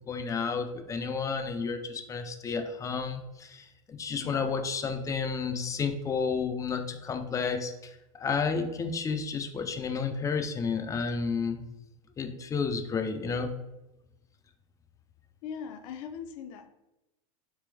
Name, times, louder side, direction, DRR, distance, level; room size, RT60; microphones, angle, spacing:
voice 1, 0.1-11.6 12.2-13.6, left 5 dB, 20° left, 7 dB, 0.4 m, -31 dB
voice 2, 4.2-4.6 15.4-16.7, left 7 dB, 60° left, 6 dB, 0.6 m, -40 dB
3.3 x 3.2 x 3.4 m, 0.97 s
supercardioid pair, 120°, 18 cm